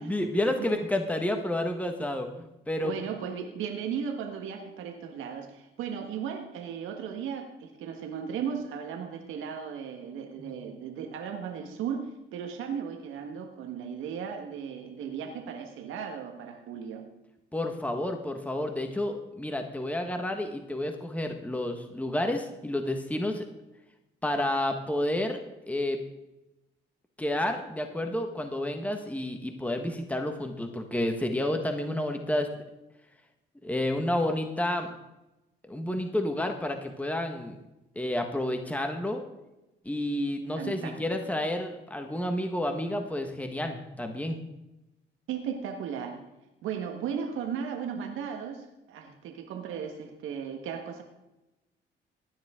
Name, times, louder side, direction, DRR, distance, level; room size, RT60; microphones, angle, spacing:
voice 1, 0.0-3.0 10.4-10.5 17.5-23.5 24.2-25.4 25.7-26.0 27.2-32.5 33.6-34.9 35.6-37.6 37.9-39.2 39.8-44.4, left 1 dB, 5° left, 5 dB, 1.5 m, -30 dB
voice 2, 2.8-17.0 40.6-41.0 45.3-46.2 46.6-51.0, right 7 dB, 90° right, 4 dB, 1.5 m, -36 dB
16.5 x 10.5 x 3.7 m, 0.97 s
cardioid pair, 90°, 20 cm